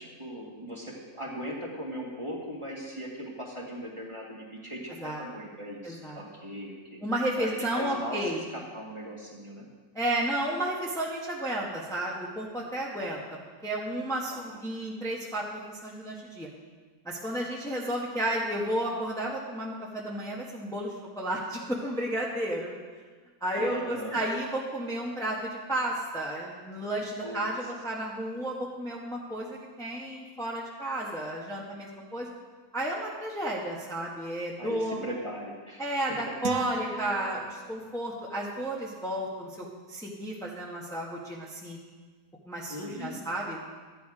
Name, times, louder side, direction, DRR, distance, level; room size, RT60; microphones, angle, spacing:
voice 1, 0.0-7.0 7.4-9.7 14.3-14.6 23.6-24.2 27.2-27.5 34.6-36.2 42.7-43.2, equal, 20° right, -2 dB, 1.8 m, -39 dB
voice 2, 5.8-6.2 7.0-8.5 9.9-13.2 13.6-16.5 17.0-22.7 23.4-32.3 32.7-35.0 35.8-41.8 42.5-43.6, right 1 dB, ahead, -4 dB, 1.4 m, -32 dB
sound 1, 36.4-38.0, right 4 dB, 75° right, 1.3 m, -36 dB
12.5 x 9.5 x 4.9 m, 1.4 s
omnidirectional pair, 1.6 m